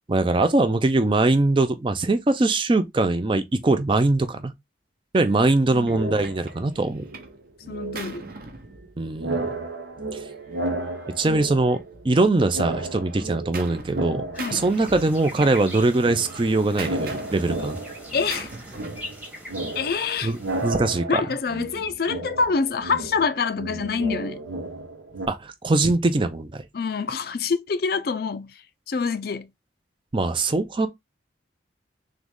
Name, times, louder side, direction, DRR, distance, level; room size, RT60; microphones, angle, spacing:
voice 1, 0.1-4.5 5.1-7.1 9.0-9.4 10.1-10.2 11.2-11.8 12.0-17.8 20.2-21.2 25.3-26.6 30.1-30.9, right 2 dB, 25° right, 0.4 m, -22 dB
Gunshot gunfire, 5.1-5.3 5.9-7.4 7.7-9.4 10.3-12.1 12.5-14.1 14.4-15.6 15.9-19.1, right 3 dB, 50° right, 0.8 m, -41 dB
sound 1, 5.8-6.7 7.0-8.9 9.1-12.2 12.5-15.0 15.3-25.3, right 2 dB, 85° right, 1.0 m, -33 dB
voice 2, 7.7-8.2 14.4-14.6 18.1-18.5 19.7-20.3 21.1-24.4 26.7-29.5, left 5 dB, 55° left, 0.4 m, -26 dB
sound 2, 14.3-20.8, equal, 10° right, 0.9 m, -41 dB
3.8 x 3.1 x 3.5 m
head